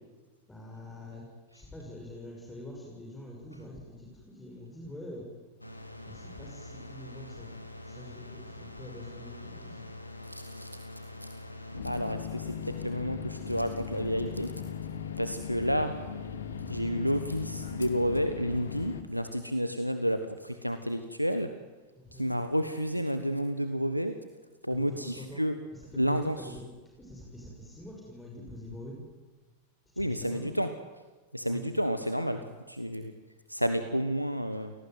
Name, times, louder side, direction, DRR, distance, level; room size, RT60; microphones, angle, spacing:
voice 1, 0.5-1.3 1.5-5.3 6.0-9.9 22.0-22.3 24.7-25.5 25.7-26.7 27.0-29.0 29.9-30.5 31.4-31.6 32.3-32.5 32.9-33.1, left 1 dB, 10° left, -1 dB, 6.2 m, -45 dB
sound 1, 5.6-11.8, left 2 dB, 85° left, 2.8 m, -45 dB
voice 2, 10.2-10.7 11.2-11.3 11.7-14.5 15.2-16.0 16.7-21.5 22.1-24.2 24.6-25.6 25.9-26.5 30.0-30.7 31.3-33.1 33.5-34.7, equal, 90° right, 9 dB, 1.3 m, -30 dB
sound 2, 11.7-19.0, left 7 dB, 70° left, 2.4 m, -38 dB
28.5 x 18.5 x 9.4 m, 1.3 s
figure-of-eight pair, 90°, 0 cm